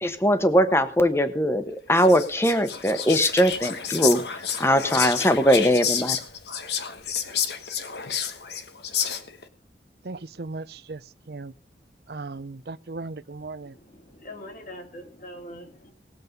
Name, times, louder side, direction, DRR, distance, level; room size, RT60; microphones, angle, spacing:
voice 1, 0.0-4.2 4.6-6.2, equal, 15° left, 1.1 m, -21 dB
Whispering, 2.0-9.4, left 8 dB, 70° left, 1.4 m, -30 dB
voice 2, 10.0-11.0 11.3-11.5 12.1-13.7, right 3 dB, 60° right, 0.6 m, -37 dB
voice 3, 13.6-15.9, left 1 dB, 50° left, 3.1 m, -43 dB
19.5 x 7.5 x 5.3 m
head